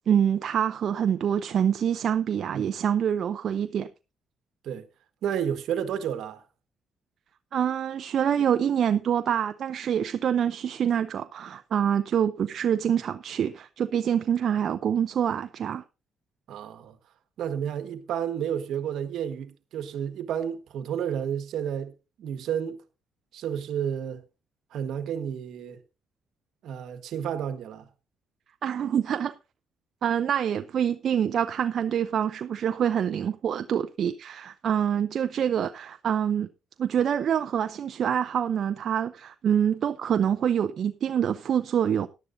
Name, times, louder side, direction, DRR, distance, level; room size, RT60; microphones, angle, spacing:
voice 1, 0.1-3.9 7.5-15.8 28.6-29.3 30.0-36.5 36.8-42.1, right 8 dB, 60° right, 0.6 m, -26 dB
voice 2, 5.2-6.4 16.5-17.0 17.4-22.8 23.3-24.2 24.7-25.8 26.6-27.9, right 8 dB, 75° right, 1.4 m, -31 dB
17.5 x 11.0 x 2.7 m
cardioid pair, 90°, 0 cm